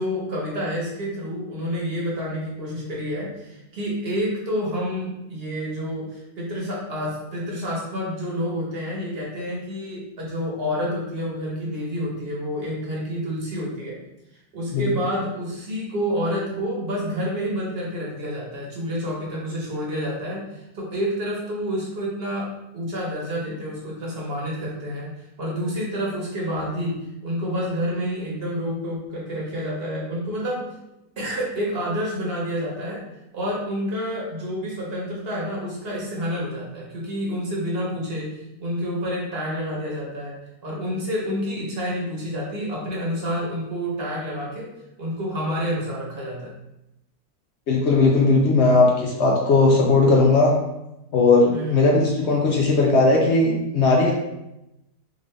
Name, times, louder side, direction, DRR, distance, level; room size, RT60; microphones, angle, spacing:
voice 1, 0.0-14.0 14.5-25.1 25.4-30.7 31.2-33.0 33.3-44.7 45.0-46.5 51.5-51.9, equal, 45° right, -4 dB, 0.9 m, -29 dB
voice 2, 47.7-50.5 51.1-54.1, left 3 dB, 75° left, -1 dB, 0.6 m, -18 dB
3.7 x 2.5 x 3.1 m, 0.89 s
omnidirectional pair, 1.7 m